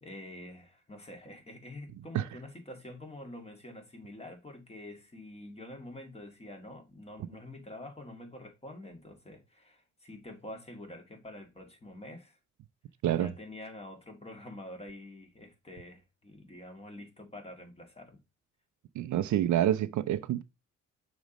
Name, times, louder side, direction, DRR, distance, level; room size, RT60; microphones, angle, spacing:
voice 1, 0.0-12.4 13.2-18.2, left 1 dB, 20° left, 2.0 m, -47 dB
voice 2, 18.9-20.4, right 12 dB, 70° right, 0.6 m, -27 dB
6.1 x 3.1 x 5.1 m
cardioid pair, 90°, 30 cm